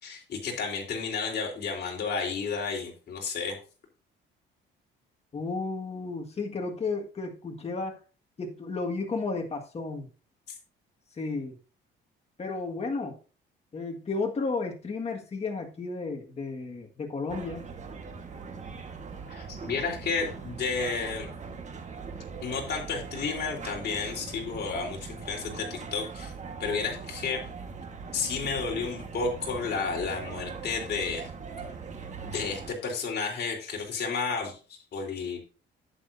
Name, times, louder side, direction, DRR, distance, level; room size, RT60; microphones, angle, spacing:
voice 1, 0.0-3.6 19.3-21.3 22.4-26.3 26.6-27.4 28.1-31.3 32.2-35.4, left 5 dB, 55° left, 0 dB, 3.7 m, -32 dB
voice 2, 5.3-8.0 8.4-10.1 11.2-11.6 12.4-13.2 13.7-17.6, left 3 dB, 30° left, 2 dB, 1.7 m, -33 dB
sound 1, 17.3-32.7, right 5 dB, 35° right, 1.5 m, -41 dB
11.0 x 8.9 x 2.7 m, 0.35 s
cardioid pair, 115°, 21 cm